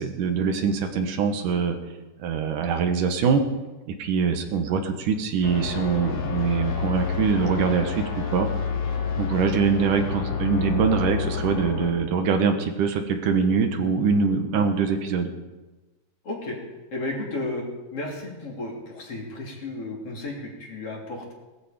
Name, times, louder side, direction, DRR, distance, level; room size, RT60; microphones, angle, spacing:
voice 1, 0.0-1.8 2.2-3.4 4.0-8.5 9.2-15.3, right 5 dB, 85° right, 6 dB, 3.0 m, -23 dB
sound 1, 5.4-11.9, left 6 dB, 75° left, 2.9 m, -29 dB
voice 2, 16.2-16.6 16.9-17.6 17.9-21.3, left 2 dB, 50° left, -2 dB, 4.0 m, -33 dB
19.0 x 14.0 x 5.1 m, 1.1 s
omnidirectional pair, 3.5 m